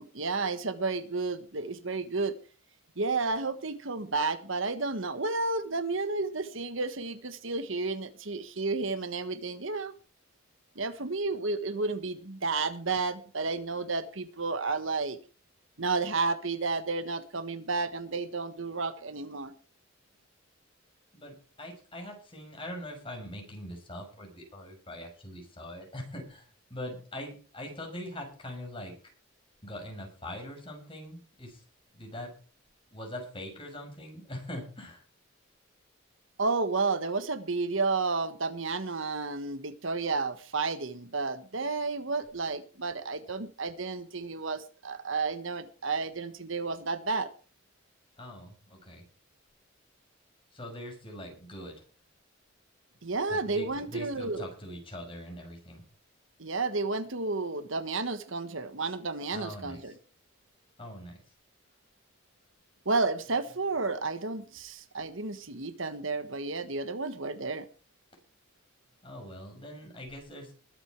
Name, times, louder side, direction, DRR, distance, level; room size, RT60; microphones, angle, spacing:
voice 1, 0.0-2.3 3.0-9.9 10.7-15.2 15.8-19.5 36.4-47.3 53.0-54.5 56.4-59.9 62.8-67.7, right 3 dB, 70° right, 1.4 m, -31 dB
voice 2, 21.1-28.9 29.6-31.6 31.9-32.3 32.9-35.1 48.2-49.0 50.5-51.8 53.3-55.8 59.3-60.0 60.8-61.2 69.0-70.5, left 1 dB, 25° left, 6.1 m, -42 dB
21.0 x 8.2 x 4.7 m
head